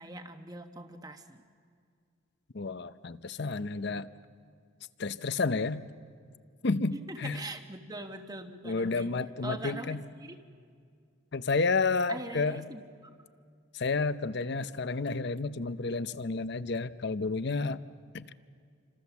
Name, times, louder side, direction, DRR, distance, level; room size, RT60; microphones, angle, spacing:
voice 1, 0.0-1.4 7.0-9.1 9.4-10.4 12.1-12.8, right 2 dB, 20° right, 7 dB, 1.1 m, -42 dB
voice 2, 2.5-4.1 5.0-5.8 6.6-7.4 8.6-10.0 11.3-12.6 13.7-17.8 18.1-18.3, left 4 dB, 55° left, 14 dB, 0.7 m, -31 dB
29.0 x 26.0 x 7.2 m, 2.2 s
head